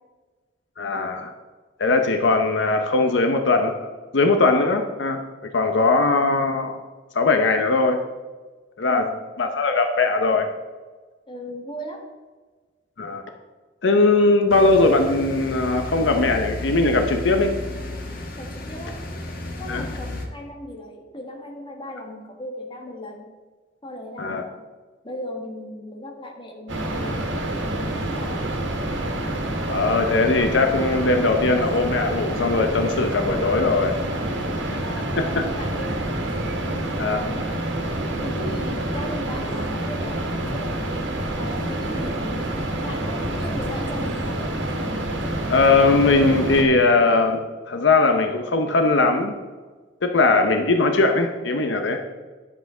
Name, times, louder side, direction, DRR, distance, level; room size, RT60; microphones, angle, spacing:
voice 1, 0.8-1.3 1.8-3.8 4.1-6.8 7.1-8.0 8.8-9.1 9.4-10.5 13.0-13.2 13.8-17.6 19.7-19.9 24.2-24.4 29.7-34.0 35.2-35.4 37.0-37.2 45.5-49.3 50.0-52.0, left 3 dB, 75° left, 5 dB, 0.7 m, -20 dB
voice 2, 8.9-9.2 10.3-10.4 11.3-12.0 18.4-19.0 19.6-23.3 23.8-24.6 25.0-27.2 27.6-28.4 34.8-36.0 37.1-37.5 38.2-40.7 41.4-42.5 42.8-44.4, left 1 dB, 25° left, 1 dB, 1.6 m, -37 dB
sound 1, 14.5-20.3, left 2 dB, 50° left, 1.3 m, -33 dB
sound 2, 26.7-46.6, right 1 dB, 90° right, 1.7 m, -27 dB
10.5 x 7.5 x 3.8 m, 1.4 s
head